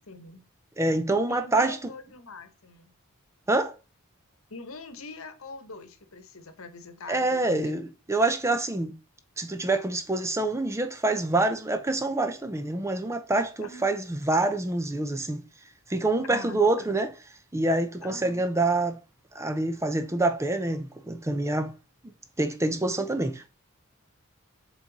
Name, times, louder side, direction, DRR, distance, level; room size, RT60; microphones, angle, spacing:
voice 1, 0.1-0.4 1.3-2.9 4.5-7.8 13.6-13.9 16.2-17.0 18.0-18.4, left 3 dB, 70° left, 1.1 m, -43 dB
voice 2, 0.8-1.8 3.5-3.8 7.1-8.9 9.4-15.4 15.9-17.1 17.5-19.0 19.3-21.7 22.4-23.5, right 2 dB, 15° right, 0.5 m, -26 dB
7.5 x 3.9 x 4.0 m
head